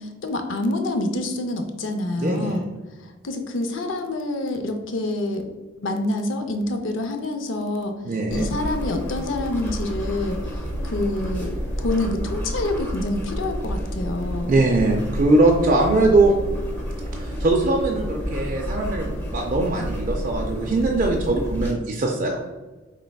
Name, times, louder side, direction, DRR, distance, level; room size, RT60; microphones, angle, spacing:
voice 1, 0.0-2.6 3.0-5.5 5.8-8.0 8.3-14.5, left 2 dB, 65° left, 5 dB, 0.5 m, -27 dB
voice 2, 2.2-2.6 8.0-8.5 14.5-16.3 17.1-22.4, right 2 dB, 40° right, 0 dB, 0.4 m, -21 dB
sound 1, 8.3-21.7, equal, 10° left, 0.7 m, -30 dB
5.2 x 3.3 x 2.2 m, 1.2 s
head